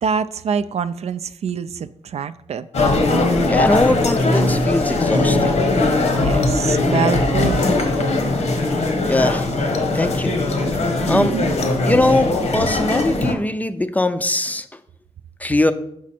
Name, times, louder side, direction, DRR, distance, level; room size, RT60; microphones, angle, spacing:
voice 1, 0.0-2.7 6.1-7.6 11.1-11.6, right 6 dB, 65° right, 0.4 m, -25 dB
sound 1, 2.7-13.3, left 2 dB, 70° left, 1.1 m, -19 dB
voice 2, 3.5-5.6 9.1-9.5 9.9-10.4 11.1-11.3 11.9-14.7 15.4-15.7, left 1 dB, 15° left, 0.4 m, -20 dB
6.1 x 6.1 x 4.3 m
wide cardioid pair, 115°, 12 cm